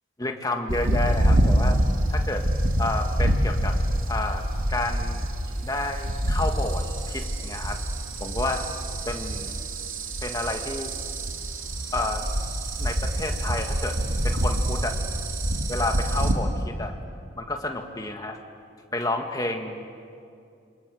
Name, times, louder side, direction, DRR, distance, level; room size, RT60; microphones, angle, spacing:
voice 1, 0.2-1.8 2.1-2.4 2.8-3.8 4.1-4.4 4.7-5.2 5.6-7.8 8.2-8.7 9.1-9.6 10.2-10.9 11.9-12.3 12.8-14.0 14.2-15.0 15.7-16.9 17.4-18.4 18.9-19.9, left 2 dB, 20° left, 3 dB, 1.9 m, -30 dB
sound 1, 0.7-16.3, right 1 dB, 85° right, 3.0 m, -26 dB
27.5 x 25.5 x 7.9 m, 2.4 s
head